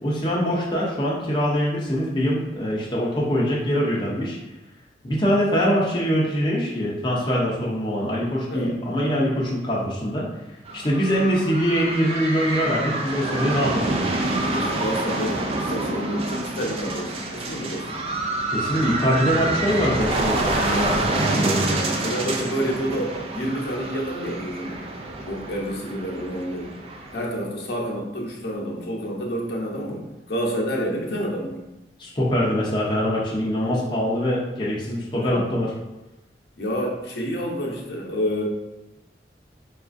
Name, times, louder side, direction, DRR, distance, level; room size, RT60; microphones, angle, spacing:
voice 1, 0.0-4.4 5.0-10.2 10.7-14.2 18.5-21.8 32.0-35.7, equal, 25° left, -6 dB, 0.5 m, -23 dB
sound 1, 10.7-27.3, right 2 dB, 35° right, 0.3 m, -27 dB
voice 2, 14.4-18.1 21.7-24.8 25.3-26.7 27.1-31.6 35.1-35.5 36.6-38.4, equal, 65° left, -3 dB, 0.7 m, -29 dB
4.1 x 2.4 x 2.5 m, 0.97 s
head